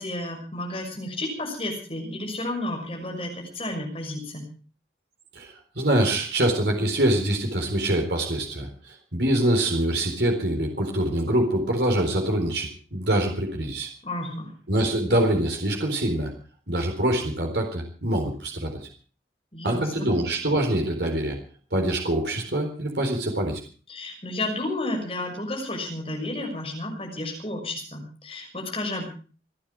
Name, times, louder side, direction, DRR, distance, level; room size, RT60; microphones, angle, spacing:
voice 1, 0.0-4.5 14.0-14.5 19.5-20.1 23.9-29.1, left 1 dB, 30° left, 1 dB, 6.2 m, -32 dB
voice 2, 5.3-13.9 14.7-16.3 16.7-18.7 19.6-21.4 21.7-23.6, right 1 dB, 70° right, 2 dB, 4.1 m, -24 dB
29.0 x 9.9 x 4.9 m, 0.39 s
head